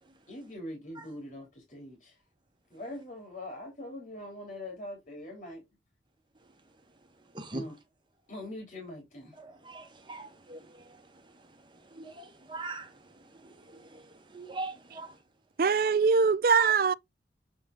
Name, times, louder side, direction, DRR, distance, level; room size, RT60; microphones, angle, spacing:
voice 1, 0.3-2.2 2.7-5.6 7.5-7.8 8.3-9.3, left 1 dB, 45° left, 3.1 m, -42 dB
voice 2, 9.4-11.1 11.7-15.2 16.6-16.7, right 2 dB, 25° right, 1.4 m, -42 dB
voice 3, 15.6-16.9, right 5 dB, 50° right, 0.4 m, -23 dB
7.6 x 4.3 x 3.7 m
head